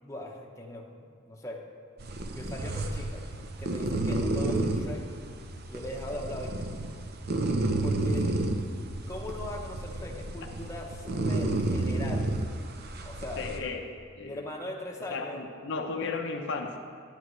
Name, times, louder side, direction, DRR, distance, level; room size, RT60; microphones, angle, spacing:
voice 1, 0.0-1.6 2.3-3.3 3.6-5.0 5.7-6.6 7.8-8.3 9.1-12.3 13.0-13.7 14.2-15.4, left 1 dB, 15° left, -1 dB, 0.8 m, -40 dB
sound 1, 2.0-13.6, right 2 dB, 50° right, 0.6 m, -31 dB
voice 2, 13.4-13.8 14.2-14.4 15.1-16.8, left 4 dB, 60° left, 3 dB, 0.7 m, -34 dB
10.0 x 10.0 x 3.1 m, 2.1 s
head